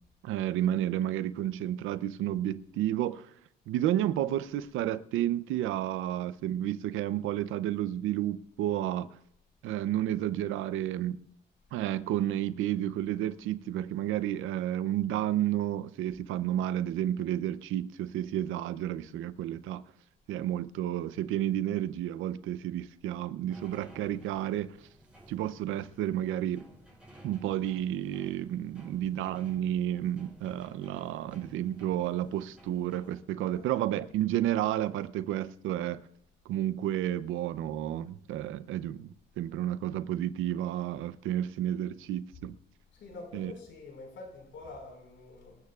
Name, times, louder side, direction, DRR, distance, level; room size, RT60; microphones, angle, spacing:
voice 1, 0.2-3.3 3.7-9.1 9.6-11.2 11.7-19.8 20.3-24.8 25.3-26.6 27.2-36.1 36.5-39.1 39.4-42.6 43.3-43.5, right 12 dB, 90° right, 0.6 m, -31 dB
sound 1, 23.5-33.2, right 1 dB, 5° right, 5.9 m, -55 dB
voice 2, 42.9-45.6, left 3 dB, 70° left, 5.0 m, -46 dB
25.5 x 13.5 x 2.4 m
cardioid pair, 90°, 20 cm